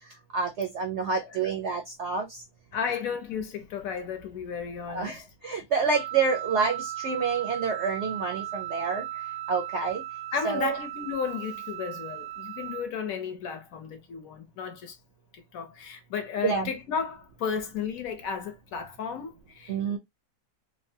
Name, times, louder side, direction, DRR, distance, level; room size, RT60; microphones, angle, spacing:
voice 1, 0.3-2.4 4.9-9.1 9.5-10.0 10.4-10.8 16.4-16.7 19.7-20.0, right 5 dB, 70° right, 0.6 m, -28 dB
voice 2, 2.7-5.2 10.3-14.9 15.3-19.8, left 6 dB, 65° left, 1.0 m, -33 dB
Wind instrument woodwind instrument, 5.9-12.9, right 14 dB, 90° right, 1.2 m, -37 dB
3.2 x 2.1 x 2.6 m
omnidirectional pair, 1.7 m